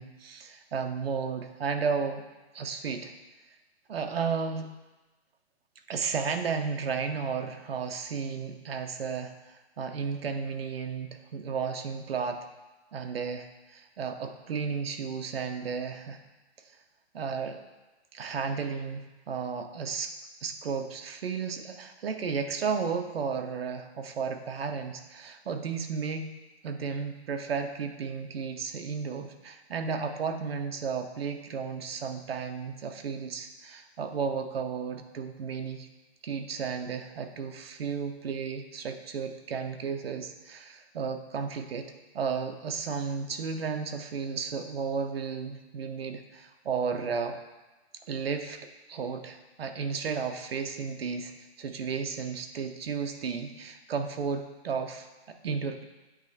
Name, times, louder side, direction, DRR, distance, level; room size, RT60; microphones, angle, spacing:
voice 1, 0.0-2.2 2.5-3.1 3.9-4.7 5.9-12.4 12.9-16.2 17.1-17.6 18.1-20.1 20.4-26.3 26.6-35.9 36.2-41.9 42.1-47.4 48.1-48.6 48.9-51.3 51.6-55.8, right 5 dB, 60° right, 6 dB, 0.7 m, -33 dB
8.8 x 3.2 x 4.0 m, 1.1 s
hypercardioid pair, 170°, 33 cm